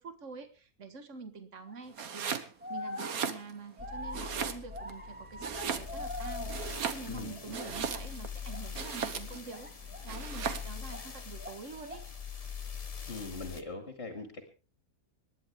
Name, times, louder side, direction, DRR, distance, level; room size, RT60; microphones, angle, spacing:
voice 1, 0.0-2.4 2.7-12.0, right 4 dB, 60° right, 8 dB, 1.9 m, -46 dB
sound 1, 1.7-2.0 2.6-7.0 7.2-8.0 8.4-8.7 9.5-11.1 11.4-12.2, equal, 5° right, 2.4 m, -44 dB
Domestic sounds home sounds, 1.9-2.5 2.9-3.8 4.1-4.9 5.4-6.1 6.5-8.3 8.7-9.5 10.1-10.7, right 7 dB, 85° right, 1.6 m, -36 dB
sound 2, 3.8-13.6, left 7 dB, 30° left, 0.9 m, -43 dB
voice 2, 7.1-7.7 13.1-14.4, left 3 dB, 50° left, 5 dB, 2.5 m, -42 dB
26.5 x 11.0 x 3.5 m, 0.34 s
omnidirectional pair, 1.5 m